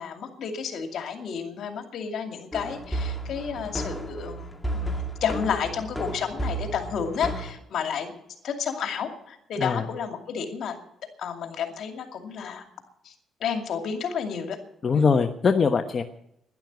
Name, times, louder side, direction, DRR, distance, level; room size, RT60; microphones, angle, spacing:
voice 1, 0.0-8.2 8.4-10.8 11.2-12.7 13.0-13.1 13.4-14.6 14.9-15.1, left 7 dB, 70° left, 5 dB, 2.5 m, -31 dB
sound 1, 2.5-7.5, right 1 dB, 10° left, 2.2 m, -33 dB
voice 2, 14.8-16.0, left 5 dB, 40° left, 5 dB, 0.9 m, -22 dB
12.0 x 11.0 x 9.4 m, 0.80 s
cardioid pair, 90°, 0 cm